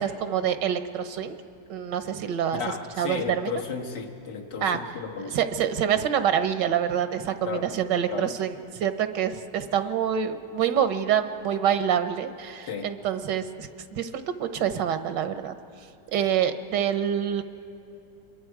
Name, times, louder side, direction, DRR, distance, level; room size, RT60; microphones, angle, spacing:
voice 1, 0.0-1.4 1.7-2.6 3.0-3.5 4.6-4.8 5.3-15.5 16.1-17.4, right 9 dB, 90° right, 10 dB, 1.5 m, -26 dB
voice 2, 2.5-5.4 7.4-7.7 8.1-8.3 12.7-12.9, left 5 dB, 80° left, 1 dB, 2.1 m, -33 dB
27.0 x 22.0 x 4.7 m, 2.8 s
omnidirectional pair, 1.9 m